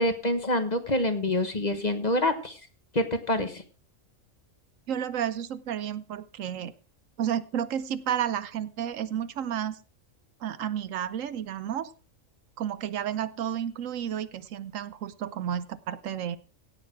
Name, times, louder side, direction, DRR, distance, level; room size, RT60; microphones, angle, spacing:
voice 1, 0.0-2.6 2.9-3.6, left 1 dB, 35° left, 8 dB, 1.3 m, -26 dB
voice 2, 4.9-6.7 7.2-9.8 10.4-11.9 12.6-16.4, right 9 dB, 75° right, 15 dB, 1.1 m, -31 dB
17.0 x 6.6 x 4.6 m, 0.37 s
omnidirectional pair, 1.4 m